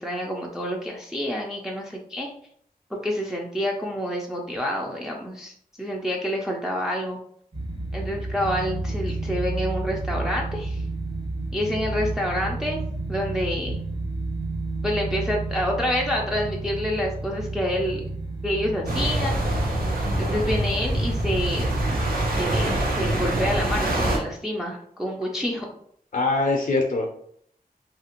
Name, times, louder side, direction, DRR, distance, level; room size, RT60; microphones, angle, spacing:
voice 1, 0.0-2.3 2.9-7.2 7.9-10.8 11.5-12.8 13.1-13.8 14.8-18.0 18.4-19.6 20.2-21.7 22.4-25.7, equal, 5° right, -1 dB, 0.4 m, -28 dB
sound 1, 7.5-22.1, right 2 dB, 30° right, 0.7 m, -31 dB
sound 2, 18.9-24.2, right 1 dB, 70° right, 0.7 m, -25 dB
voice 2, 20.1-20.4 26.1-27.1, left 3 dB, 55° left, 1 dB, 0.5 m, -24 dB
2.7 x 2.4 x 2.9 m, 0.65 s
wide cardioid pair, 115°, 16 cm